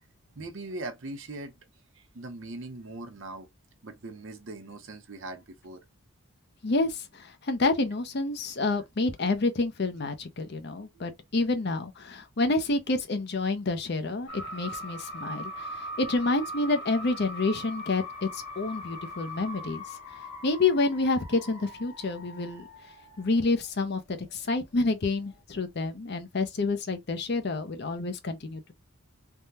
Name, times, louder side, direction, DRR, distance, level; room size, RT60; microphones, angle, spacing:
voice 1, 0.4-1.5 2.0-3.5 3.8-5.8, right 2 dB, 55° right, 0.7 m, -40 dB
voice 2, 6.6-19.8 20.4-22.7 23.2-28.7, left 3 dB, 50° left, 0.6 m, -28 dB
sound 1, 14.3-23.8 24.1-24.9 25.1-25.4, equal, 65° left, 1.4 m, -41 dB
3.5 x 2.2 x 2.7 m
head